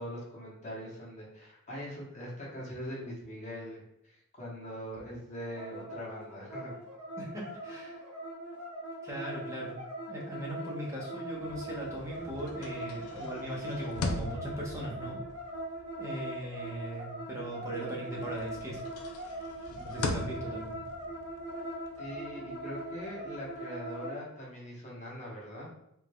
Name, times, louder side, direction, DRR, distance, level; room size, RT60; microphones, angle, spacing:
voice 1, 0.0-6.7 22.0-25.7, equal, 35° left, -5 dB, 1.0 m, -42 dB
sound 1, 5.5-24.2, right 1 dB, 85° right, 1.1 m, -41 dB
voice 2, 7.2-7.9 9.0-9.8 10.1-15.2 16.0-18.8 19.8-20.8, right 1 dB, 15° right, -4 dB, 0.9 m, -39 dB
sound 2, 11.4-17.8 18.2-23.6, left 2 dB, 75° left, 0.5 m, -41 dB
3.6 x 3.3 x 2.2 m, 0.76 s
head